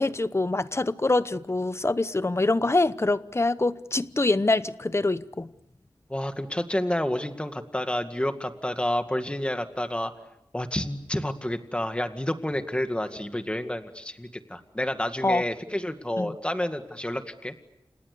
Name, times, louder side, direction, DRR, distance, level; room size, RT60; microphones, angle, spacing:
voice 1, 0.0-5.5 15.2-15.4 16.2-16.4, left 2 dB, 30° left, 0.9 m, -25 dB
voice 2, 6.1-10.1 10.5-17.5, left 1 dB, 10° left, 2.1 m, -29 dB
29.5 x 28.0 x 6.9 m
wide cardioid pair, 85°, 9 cm